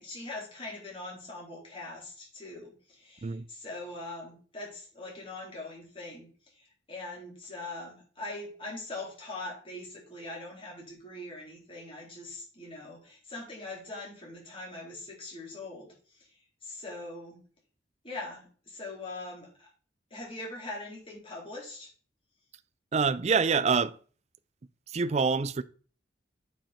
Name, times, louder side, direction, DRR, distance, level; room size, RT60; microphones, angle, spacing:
voice 1, 0.0-6.3 6.5-15.9 16.2-16.3 16.6-17.4 18.0-19.7 20.1-21.9, left 2 dB, 30° left, 3.8 m, -42 dB
voice 2, 22.9-24.0 24.9-25.6, right 5 dB, 35° right, 0.4 m, -26 dB
8.8 x 5.6 x 4.2 m
head